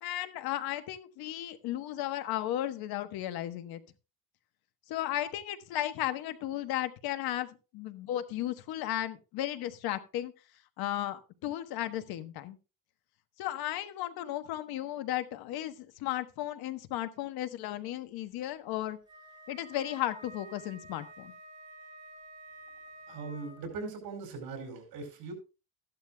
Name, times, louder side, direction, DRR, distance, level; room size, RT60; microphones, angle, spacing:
voice 1, 0.0-3.8 4.9-7.5 7.7-10.3 10.8-12.6 13.4-19.0 19.5-21.3, left 13 dB, 85° left, 1.2 m, -35 dB
Wind instrument woodwind instrument, 19.1-23.7, right 1 dB, 10° right, 5.7 m, -50 dB
voice 2, 23.1-25.3, right 4 dB, 75° right, 4.8 m, -40 dB
14.5 x 11.5 x 2.3 m
cardioid pair, 155°, 36 cm